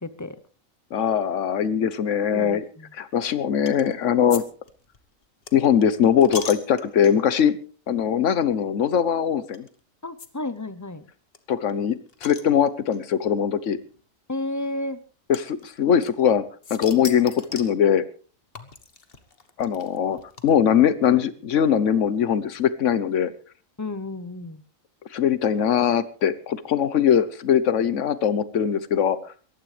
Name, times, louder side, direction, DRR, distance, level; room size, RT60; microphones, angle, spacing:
voice 1, 0.0-0.4 2.3-2.9 10.0-11.1 14.3-15.0 23.8-24.6, left 2 dB, 20° left, 14 dB, 0.6 m, -32 dB
voice 2, 0.9-2.6 3.0-4.4 5.5-7.6 7.9-9.7 11.5-13.8 15.3-16.4 16.7-18.0 19.6-23.3 25.1-29.2, left 8 dB, 65° left, 15 dB, 1.3 m, -21 dB
sound 1, 3.7-3.9 4.3-4.4 4.7-7.4 8.0-8.2 8.4-8.5 9.5-9.7 10.2-10.3 10.6-10.7 10.8-10.9 11.3-13.0 13.9-14.0 15.3-16.3 16.6-17.8 18.6-20.8, left 5 dB, 45° left, 1.5 m, -38 dB
22.5 x 15.0 x 3.3 m, 0.38 s
omnidirectional pair, 1.4 m